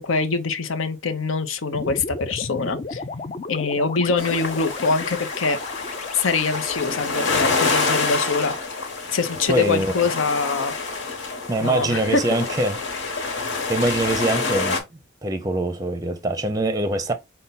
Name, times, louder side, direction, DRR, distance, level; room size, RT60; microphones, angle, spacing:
voice 1, 0.0-3.0 3.5-5.6 6.1-8.5 9.1-10.7 11.6-12.2, left 4 dB, 85° left, 0.7 m, -24 dB
sound 1, 1.7-10.0, left 3 dB, 35° left, 0.4 m, -35 dB
sound 2, 4.2-14.8, left 4 dB, 65° left, 1.3 m, -27 dB
voice 2, 9.5-10.0 11.5-13.1 13.7-14.8 15.2-17.1, right 2 dB, 20° right, 0.5 m, -24 dB
5.4 x 2.2 x 3.9 m
head